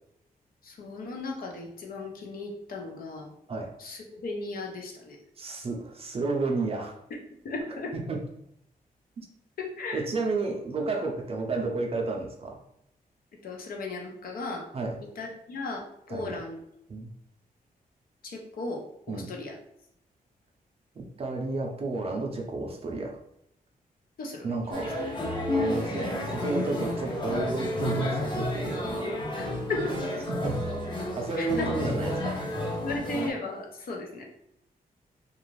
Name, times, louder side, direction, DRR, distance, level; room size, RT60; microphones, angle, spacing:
voice 1, 0.6-5.2 7.4-7.9 9.6-10.0 13.4-14.7 15.2-16.6 18.2-19.6 24.2-24.5 29.4-29.5 31.4-31.7 32.8-34.2, left 2 dB, 70° left, 1 dB, 0.6 m, -36 dB
voice 2, 5.4-7.0 7.9-8.2 9.2-9.3 9.9-12.6 14.7-15.0 16.1-16.4 16.9-17.1 19.1-19.3 21.0-23.2 24.4-25.0 25.5-29.6 30.3-30.6 31.1-32.5, right 3 dB, 40° right, 1 dB, 0.5 m, -32 dB
sound 1, 24.7-33.3, left 1 dB, 30° left, 0.6 m, -31 dB
2.4 x 2.4 x 3.1 m, 0.76 s
wide cardioid pair, 150°, 15 cm